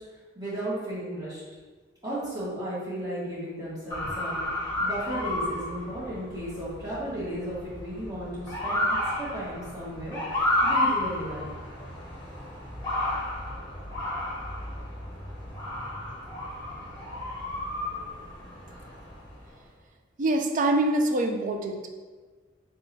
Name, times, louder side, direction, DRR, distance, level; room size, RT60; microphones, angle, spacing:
voice 1, 0.3-1.4 2.0-8.8 9.1-11.5, right 1 dB, 20° right, -8 dB, 1.5 m, -35 dB
Motor vehicle (road) / Siren, 3.9-19.5, left 1 dB, 25° left, 1.0 m, -32 dB
voice 2, 20.2-22.0, right 2 dB, 40° right, 4 dB, 0.4 m, -25 dB
3.9 x 3.8 x 2.7 m, 1.4 s
head